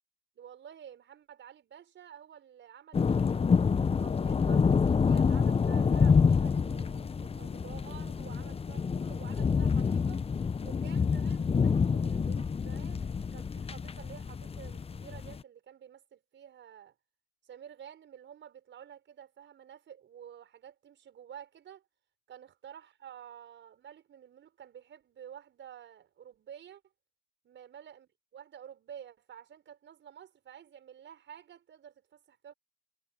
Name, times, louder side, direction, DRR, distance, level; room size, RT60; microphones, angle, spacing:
voice 1, 0.4-3.5 3.9-10.2 10.6-16.9 17.4-21.9 22.3-26.8 27.4-32.5, right 9 dB, 35° right, 6.2 m, -51 dB
sound 1, 2.9-15.4, left 5 dB, 15° left, 1.3 m, -27 dB
figure-of-eight pair, 75°, 33 cm